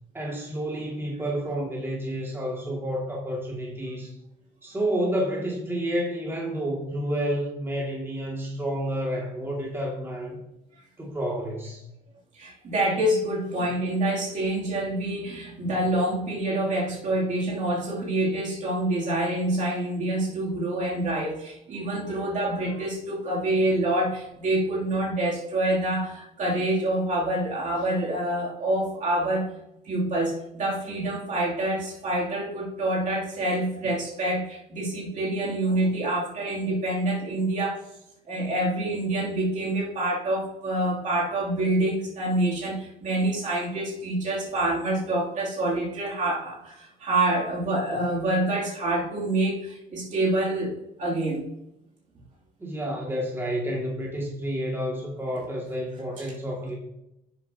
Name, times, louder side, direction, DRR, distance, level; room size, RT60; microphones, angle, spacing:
voice 1, 0.1-4.1 4.6-10.4 11.0-11.8 52.6-56.8, equal, 15° right, -3 dB, 2.1 m, -30 dB
voice 2, 12.4-29.5 29.8-37.8 38.3-51.5 56.2-56.3, right 1 dB, 45° right, -3 dB, 2.7 m, -26 dB
9.6 x 7.1 x 2.8 m, 0.84 s
cardioid pair, 110°, 17 cm